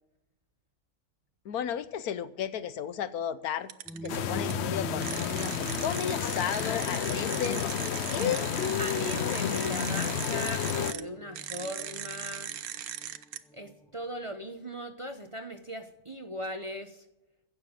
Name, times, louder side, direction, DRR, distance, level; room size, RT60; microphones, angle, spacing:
voice 1, 1.4-3.7 4.0-7.6 8.1-8.5, left 8 dB, 80° left, 14 dB, 1.3 m, -33 dB
sound 1, 3.7-4.2 4.5-4.6 5.0-11.0 11.3-13.4, right 11 dB, 80° right, 1.2 m, -39 dB
sound 2, 3.9-13.8, right 1 dB, 5° left, 0.4 m, -44 dB
sound 3, 4.1-10.9, left 9 dB, 60° left, 0.8 m, -31 dB
voice 2, 8.8-12.6 13.5-17.0, equal, 25° right, 6 dB, 0.7 m, -39 dB
16.0 x 6.8 x 8.7 m, 0.93 s
omnidirectional pair, 1.6 m